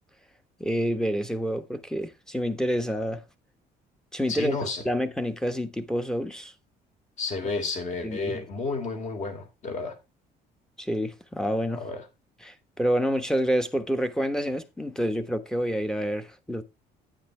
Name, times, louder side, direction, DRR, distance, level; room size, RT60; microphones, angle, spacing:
voice 1, 0.6-3.2 4.1-6.5 8.0-8.4 10.8-11.8 12.4-16.6, equal, 5° left, 1.1 m, -28 dB
voice 2, 4.3-4.8 7.2-10.0 11.7-12.0, left 4 dB, 45° left, 3.2 m, -31 dB
9.5 x 8.7 x 3.3 m
cardioid pair, 110°, 17 cm